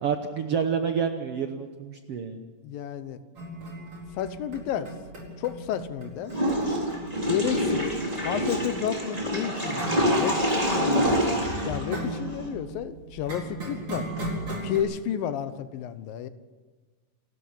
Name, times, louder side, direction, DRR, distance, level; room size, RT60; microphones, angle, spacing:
voice 1, 0.0-2.4, right 6 dB, 70° right, 6 dB, 1.5 m, -28 dB
voice 2, 2.6-3.2 4.1-4.9 5.4-6.3 7.3-7.9 8.2-11.2 11.7-14.1 14.6-16.3, left 10 dB, 85° left, 12 dB, 2.8 m, -31 dB
sound 1, 3.3-14.8, right 1 dB, 30° right, 5.0 m, -39 dB
Water / Toilet flush, 6.3-12.5, equal, 10° right, 3.8 m, -26 dB
28.0 x 13.5 x 7.2 m, 1.3 s
omnidirectional pair, 4.0 m